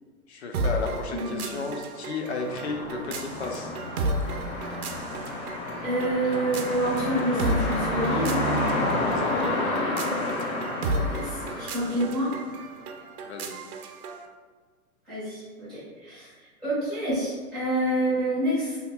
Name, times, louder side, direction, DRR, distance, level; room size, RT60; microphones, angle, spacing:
voice 1, 0.3-3.7 9.0-9.6 13.2-13.6, left 3 dB, 50° left, 3 dB, 0.5 m, -33 dB
sound 1, 0.5-14.3, right 1 dB, 80° right, 0.6 m, -34 dB
voice 2, 1.1-1.5 5.8-8.4 11.1-12.3 15.1-16.3 16.6-18.8, right 1 dB, ahead, -14 dB, 0.6 m, -27 dB
sound 2, 2.4-12.6, left 1 dB, 80° left, 1.1 m, -30 dB
2.8 x 2.2 x 4.1 m, 1.5 s
hypercardioid pair, 165°, 43 cm